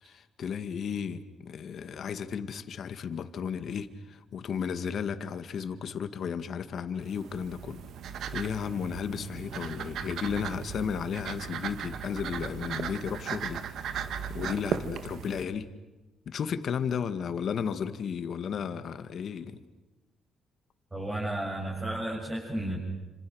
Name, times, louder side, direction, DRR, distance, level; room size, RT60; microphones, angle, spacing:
voice 1, 0.0-7.8 8.3-13.6 14.3-15.7 16.3-19.6, left 7 dB, 60° left, 10 dB, 2.1 m, -34 dB
sound 1, 7.0-15.4, right 8 dB, 70° right, 1.7 m, -37 dB
voice 2, 20.9-22.8, right 1 dB, 20° right, -4 dB, 7.6 m, -33 dB
30.0 x 27.0 x 6.5 m, 1.1 s
cardioid pair, 90°, 0 cm